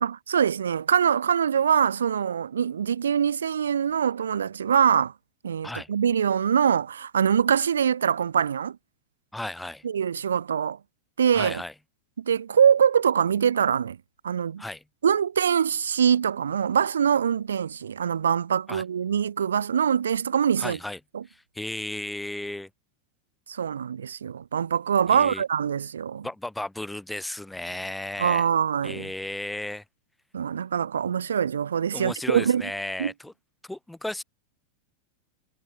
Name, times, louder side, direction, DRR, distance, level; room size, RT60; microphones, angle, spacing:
voice 1, 0.0-5.1 5.4-8.8 9.8-10.8 11.2-11.6 12.2-14.0 14.2-14.6 15.0-20.8 21.1-21.2 23.5-26.3 28.2-29.1 30.3-32.7 33.0-33.1, right 8 dB, 70° right, 0.4 m, -23 dB
voice 2, 9.3-9.8 11.3-11.7 14.6-14.8 18.7-18.8 20.6-21.0 21.3-22.7 25.1-25.4 26.2-28.5 28.8-29.8 31.9-33.3 33.6-34.2, left 1 dB, 5° left, 1.5 m, -34 dB
figure-of-eight pair, 90°, 0 cm